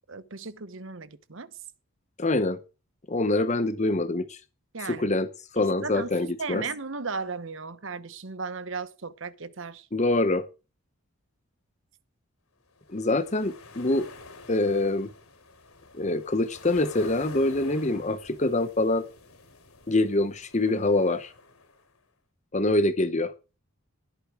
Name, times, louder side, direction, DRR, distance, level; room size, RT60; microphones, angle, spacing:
voice 1, 0.1-1.5 4.7-5.1 5.6-9.9, right 4 dB, 60° right, 1.0 m, -36 dB
voice 2, 2.2-2.6 3.1-4.4 4.8-5.3 5.5-6.6 9.9-10.4 12.9-14.1 14.5-15.1 15.9-19.0 19.9-21.3 22.5-23.3, left 2 dB, 35° left, 0.9 m, -25 dB
sound 1, 12.7-22.0, left 3 dB, 80° left, 4.8 m, -48 dB
20.5 x 8.3 x 4.8 m
head